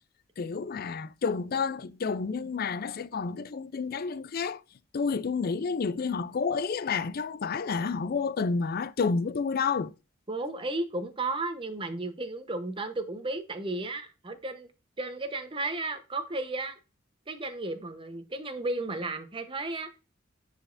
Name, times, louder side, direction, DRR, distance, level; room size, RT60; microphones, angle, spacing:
voice 1, 0.4-4.6 4.9-9.9, left 5 dB, 50° left, 0.4 m, -30 dB
voice 2, 10.3-14.7 15.0-16.8 17.3-19.9, right 2 dB, 25° right, 0.9 m, -34 dB
9.9 x 5.1 x 2.6 m
head